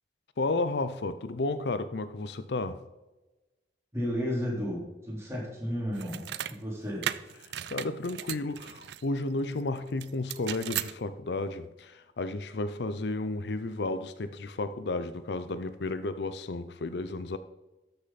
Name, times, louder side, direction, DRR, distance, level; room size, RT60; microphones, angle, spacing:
voice 1, 0.4-2.8 7.7-17.4, left 2 dB, 75° left, 0.6 m, -32 dB
voice 2, 3.9-6.2 6.5-7.0, equal, 15° right, 3.5 m, -33 dB
sound 1, 5.9-6.5 7.0-9.0 10.0-10.9, right 10 dB, 75° right, 0.4 m, -36 dB
13.5 x 6.6 x 4.1 m
head